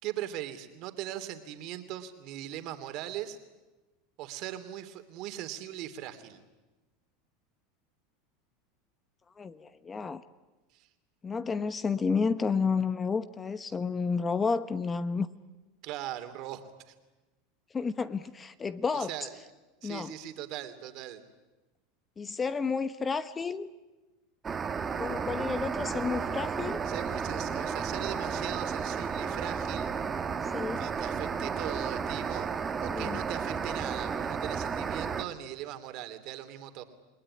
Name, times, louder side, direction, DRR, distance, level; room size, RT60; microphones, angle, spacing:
voice 1, 0.0-3.4 4.2-6.4 10.7-10.9 15.8-16.9 18.9-19.4 19.8-21.2 26.8-29.9 30.8-32.5 32.8-36.8, right 12 dB, 55° right, 9 dB, 2.9 m, -39 dB
voice 2, 9.4-10.2 11.2-15.3 17.7-19.1 19.8-20.1 22.2-23.7 25.0-26.8 30.4-30.9 32.9-33.2, left 5 dB, 20° left, 13 dB, 1.0 m, -31 dB
sound 1, 24.4-35.2, right 6 dB, 25° right, 1.8 m, -33 dB
29.0 x 19.5 x 9.9 m, 1.2 s
supercardioid pair, 120°, 0 cm